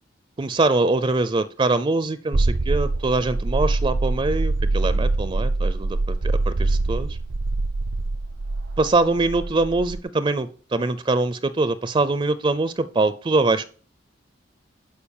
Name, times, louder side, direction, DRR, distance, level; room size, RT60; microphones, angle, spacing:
voice 1, 0.4-7.2 8.8-13.7, right 3 dB, 25° right, 14 dB, 0.4 m, -23 dB
sound 1, 2.3-10.0, right 2 dB, 80° right, 0.7 m, -24 dB
12.0 x 5.0 x 7.1 m, 0.43 s
head